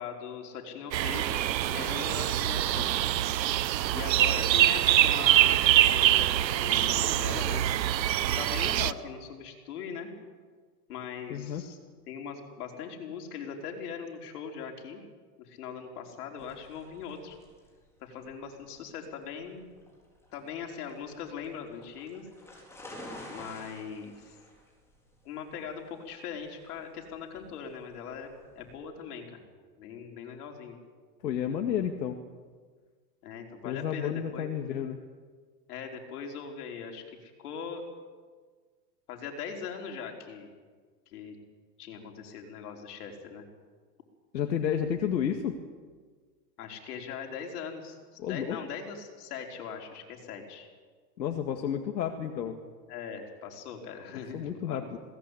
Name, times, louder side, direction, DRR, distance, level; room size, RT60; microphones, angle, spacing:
voice 1, 0.0-2.9 3.9-7.8 8.4-10.1 10.9-11.8 12.1-15.0 15.4-17.4 18.0-19.7 20.3-22.3 23.3-24.4 25.3-28.3 28.6-29.4 29.8-30.8 33.2-34.5 35.7-37.8 39.1-40.5 41.1-41.4 41.8-43.5 46.6-50.7 52.9-54.9, left 6 dB, 60° left, 2 dB, 5.1 m, -40 dB
sound 1, 0.9-8.9, right 13 dB, 85° right, 1.0 m, -24 dB
voice 2, 11.3-11.6 31.2-32.2 33.6-35.0 44.3-45.6 48.2-48.6 51.2-52.6 54.3-55.0, left 9 dB, 90° left, 4 dB, 2.1 m, -31 dB
sound 2, 16.4-28.7, left 1 dB, 5° left, 4.5 m, -50 dB
21.0 x 18.5 x 8.6 m, 1.5 s
supercardioid pair, 155°, 50 cm